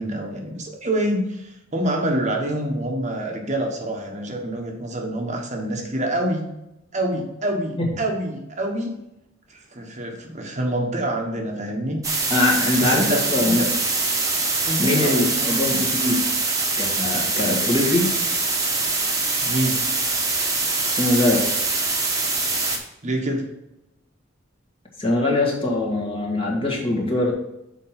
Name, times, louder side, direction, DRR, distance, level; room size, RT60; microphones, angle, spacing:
voice 1, 0.0-6.5 6.9-9.0 9.5-12.0 12.8-13.7 14.6-15.5 19.4-19.8 23.0-23.4, right 1 dB, 40° right, 2 dB, 1.2 m, -26 dB
sound 1, 12.0-22.8, right 3 dB, 20° right, 1.2 m, -23 dB
voice 2, 12.3-13.7 14.8-16.3 16.8-18.1 20.9-21.5 25.0-27.3, left 2 dB, 30° left, -1 dB, 1.8 m, -22 dB
7.0 x 4.7 x 5.7 m, 0.88 s
head